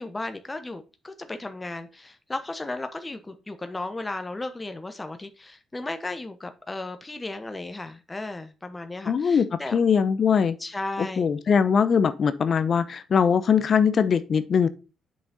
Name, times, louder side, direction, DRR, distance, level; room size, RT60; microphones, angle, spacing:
voice 1, 0.0-9.8 10.6-11.3, left 2 dB, 20° left, 0.9 m, -35 dB
voice 2, 9.1-10.6 11.0-14.7, left 6 dB, 50° left, 0.6 m, -21 dB
7.6 x 5.8 x 4.0 m
cardioid pair, 90°, 0 cm